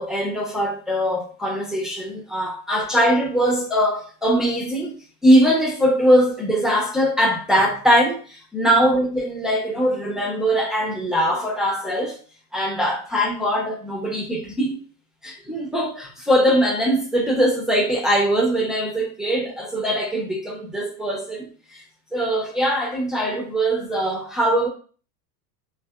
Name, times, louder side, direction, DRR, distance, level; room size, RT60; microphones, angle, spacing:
voice 1, 0.0-4.9 5.2-12.2 12.5-14.8 15.2-21.8 22.1-24.7, equal, ahead, 0.8 m, -21 dB
3.4 x 2.2 x 2.3 m
hypercardioid pair, 90°, 50 cm